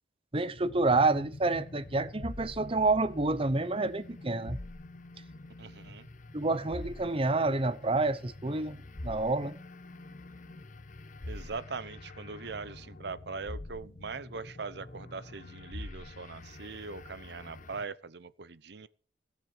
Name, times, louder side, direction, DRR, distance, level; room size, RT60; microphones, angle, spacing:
voice 1, 0.3-4.6 6.3-9.6, right 3 dB, 30° right, 0.8 m, -28 dB
sound 1, 0.5-17.8, left 2 dB, 45° left, 1.1 m, -46 dB
voice 2, 5.6-6.1 11.2-18.9, right 4 dB, 65° right, 0.8 m, -41 dB
17.5 x 7.4 x 6.6 m
head